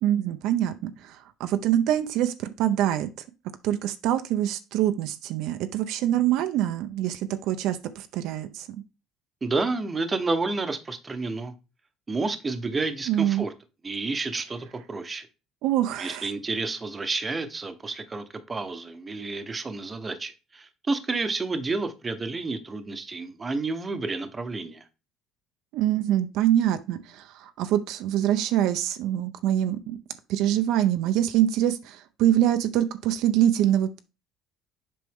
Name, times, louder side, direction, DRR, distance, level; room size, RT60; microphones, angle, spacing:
voice 1, 0.0-3.1 3.6-8.7 13.1-13.5 15.6-16.3 25.7-30.0 30.3-34.0, right 11 dB, 70° right, 0.6 m, -25 dB
voice 2, 9.4-11.5 12.1-13.5 13.8-15.3 16.0-24.9, right 3 dB, 20° right, 0.9 m, -30 dB
7.6 x 5.2 x 3.5 m
cardioid pair, 140°, 0 cm